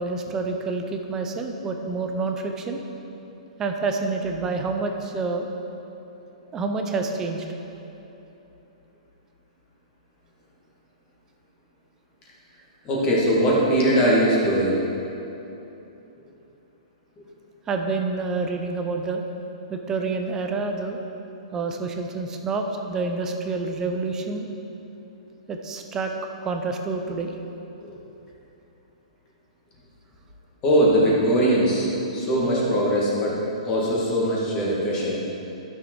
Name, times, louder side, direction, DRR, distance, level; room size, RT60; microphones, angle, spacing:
voice 1, 0.0-2.8 3.6-5.4 6.5-7.4 17.7-19.2 19.7-21.0 21.5-24.5 25.5-26.1 26.4-27.3, right 3 dB, 15° right, 4 dB, 0.5 m, -28 dB
voice 2, 12.8-14.8 27.8-27.9 30.6-31.9 32.1-33.4 33.6-35.2, equal, 20° left, -5 dB, 1.8 m, -21 dB
12.5 x 6.4 x 4.5 m, 3.0 s
hypercardioid pair, 165°, 4 cm